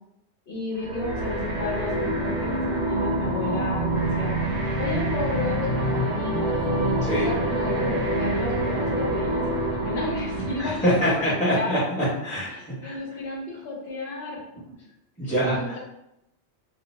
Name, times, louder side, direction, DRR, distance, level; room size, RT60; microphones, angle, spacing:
voice 1, 0.5-4.4 4.8-6.6 7.1-11.8 12.5-14.4 15.5-15.8, left 3 dB, 65° left, -3 dB, 1.0 m, -33 dB
sound 1, 0.8-11.3, right 1 dB, 80° right, 1.0 m, -26 dB
voice 2, 10.6-13.0 15.2-15.8, equal, 5° left, -10 dB, 1.0 m, -25 dB
2.7 x 2.0 x 3.1 m, 0.82 s
omnidirectional pair, 1.2 m